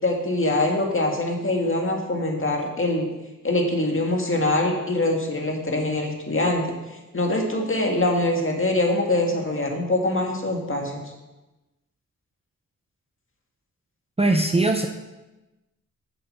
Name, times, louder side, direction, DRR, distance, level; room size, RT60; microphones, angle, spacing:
voice 1, 0.0-3.1 3.4-6.6 7.1-11.0, left 2 dB, 35° left, 1 dB, 2.0 m, -23 dB
voice 2, 14.2-14.9, right 2 dB, 15° right, 4 dB, 0.7 m, -20 dB
7.1 x 7.1 x 5.5 m, 1.1 s
cardioid pair, 65°, 35 cm